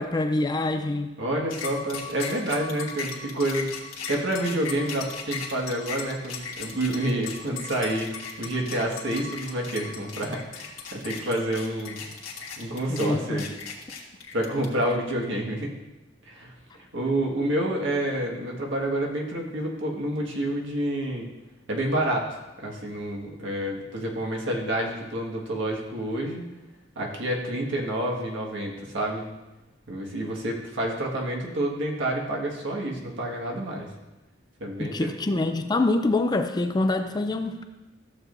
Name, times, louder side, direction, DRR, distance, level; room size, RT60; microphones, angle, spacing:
voice 1, 0.0-1.1 12.9-13.4 34.8-37.6, left 2 dB, 20° left, 7 dB, 0.4 m, -25 dB
voice 2, 1.2-3.7 4.1-12.0 12.6-13.5 14.3-15.7 16.3-21.3 21.7-26.4 27.0-29.3 29.9-33.9 34.6-35.1, right 1 dB, 65° right, -1 dB, 1.7 m, -28 dB
sound 1, 1.5-14.9, left 5 dB, 80° left, 1.7 m, -37 dB
14.0 x 7.5 x 2.6 m, 1.1 s
head